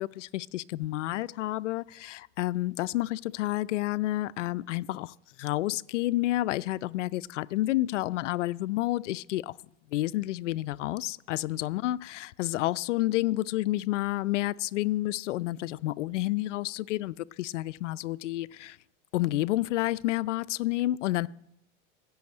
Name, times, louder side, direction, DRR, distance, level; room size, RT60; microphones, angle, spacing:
voice 1, 0.0-9.5 9.9-18.8 19.1-21.3, left 16 dB, 80° left, 0.6 m, -30 dB
16.5 x 7.0 x 9.6 m
supercardioid pair, 160°, 36 cm